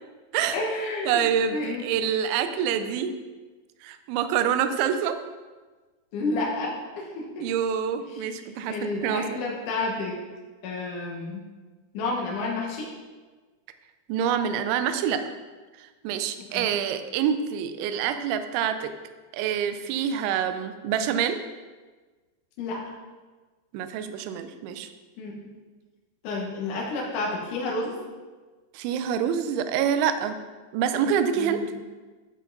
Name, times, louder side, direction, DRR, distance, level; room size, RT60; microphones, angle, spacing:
voice 1, 0.5-1.9 6.1-7.5 8.1-8.3 8.7-10.2 10.6-11.4 11.9-12.9 16.5-16.7 22.6-22.8 25.2-25.3 26.2-28.0 31.3-31.7, left 2 dB, 75° left, -3 dB, 1.8 m, -30 dB
voice 2, 1.1-3.1 3.8-5.2 7.4-9.4 14.1-15.2 15.8-18.9 19.3-21.4 23.7-24.9 28.7-30.4 30.7-31.6, right 8 dB, 85° right, 9 dB, 2.9 m, -26 dB
12.5 x 5.4 x 3.9 m, 1.3 s
omnidirectional pair, 5.5 m